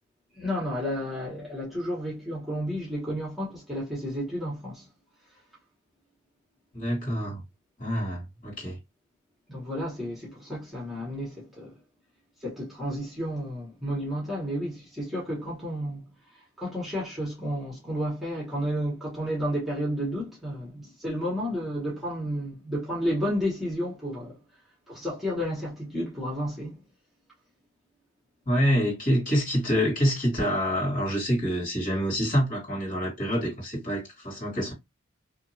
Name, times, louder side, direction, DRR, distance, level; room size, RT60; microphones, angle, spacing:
voice 1, 0.3-4.9 9.5-11.8 12.4-16.1 16.6-24.4 24.9-26.8, equal, ahead, 1.1 m, -31 dB
voice 2, 6.7-7.4 7.8-8.8 28.5-34.7, equal, 40° left, 1.8 m, -26 dB
2.8 x 2.5 x 2.6 m
head